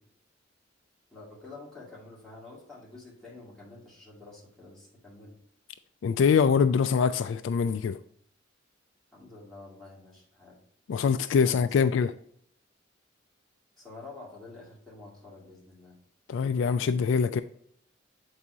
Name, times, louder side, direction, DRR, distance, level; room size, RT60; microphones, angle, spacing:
voice 1, 1.1-5.4 9.1-10.6 11.4-12.0 13.8-16.0, left 3 dB, ahead, 2.3 m, -48 dB
voice 2, 6.0-8.0 10.9-12.1 16.3-17.4, left 6 dB, 65° left, 0.3 m, -24 dB
7.4 x 4.7 x 2.7 m
head